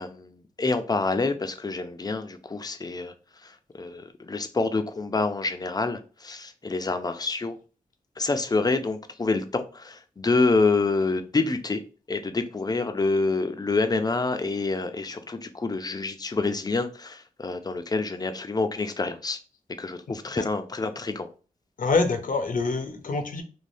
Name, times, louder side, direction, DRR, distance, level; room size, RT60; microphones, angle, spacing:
voice 1, 0.0-3.1 3.4-7.6 8.2-11.8 12.1-19.4 19.8-21.3, left 3 dB, 25° left, 0.5 m, -27 dB
voice 2, 20.1-20.5 21.8-23.4, left 3 dB, 65° left, 0.7 m, -26 dB
3.3 x 2.1 x 2.6 m
cardioid pair, 65°, 15 cm